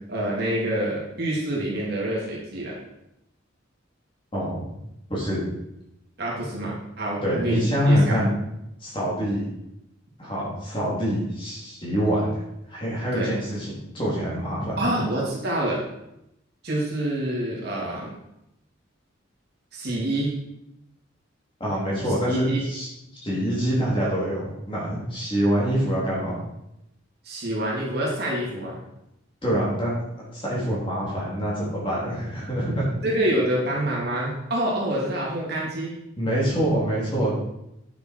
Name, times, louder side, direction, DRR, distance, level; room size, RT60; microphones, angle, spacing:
voice 1, 0.1-2.8 6.2-8.2 13.1-13.3 14.8-15.8 16.6-18.1 19.7-20.3 22.3-22.6 27.2-28.8 33.0-35.9, right 1 dB, 55° right, -4 dB, 3.1 m, -27 dB
voice 2, 5.1-5.4 7.2-8.3 8.8-9.5 10.2-12.4 12.7-14.8 21.6-22.9 23.2-26.4 29.4-29.9 30.3-32.9 36.2-37.3, equal, 25° left, -6 dB, 3.8 m, -25 dB
9.6 x 7.9 x 4.8 m, 0.85 s
head